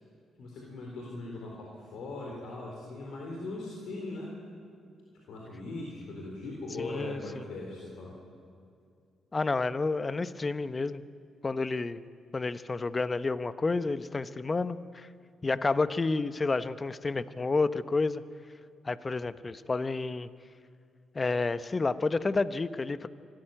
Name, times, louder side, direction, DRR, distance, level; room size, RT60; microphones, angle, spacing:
voice 1, 0.4-4.3 5.3-8.1, left 2 dB, 70° left, -2 dB, 3.9 m, -40 dB
voice 2, 6.8-7.5 9.3-11.0 11.4-12.0 12.3-15.1 15.4-18.2 18.8-20.3 21.1-23.1, left 3 dB, 35° left, 14 dB, 0.9 m, -30 dB
25.0 x 14.0 x 9.1 m, 2.4 s
hypercardioid pair, 50°, 0 cm